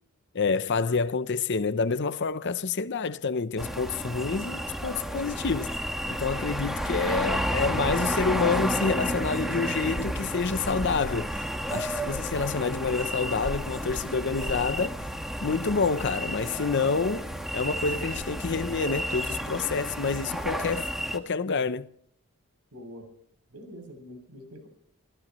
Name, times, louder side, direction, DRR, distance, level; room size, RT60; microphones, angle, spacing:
voice 1, 0.3-5.7 6.1-11.4 11.7-15.0 15.4-17.3 17.5-21.9, left 4 dB, 50° left, 0.7 m, -28 dB
sound 1, 3.6-21.2, equal, ahead, 1.5 m, -31 dB
voice 2, 22.7-23.1 23.5-24.7, equal, 85° right, 7.4 m, -45 dB
27.5 x 16.0 x 3.1 m
head